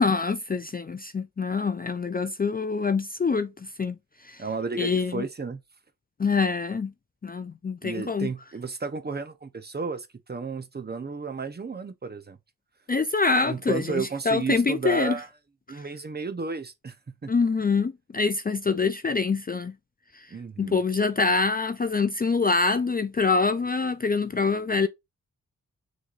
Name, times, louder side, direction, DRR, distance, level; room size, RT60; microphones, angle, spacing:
voice 1, 0.0-3.5 3.8-4.0 4.2-4.4 4.8-5.2 6.2-6.9 7.2-8.3 12.9-15.2 15.7-15.8 17.3-19.7 20.6-24.9, left 4 dB, 25° left, 0.4 m, -25 dB
voice 2, 4.4-5.6 7.8-12.4 13.5-15.3 15.7-17.0 17.2-17.3 20.3-20.8, right 4 dB, 30° right, 0.7 m, -33 dB
6.2 x 3.2 x 2.4 m
wide cardioid pair, 100°, 34 cm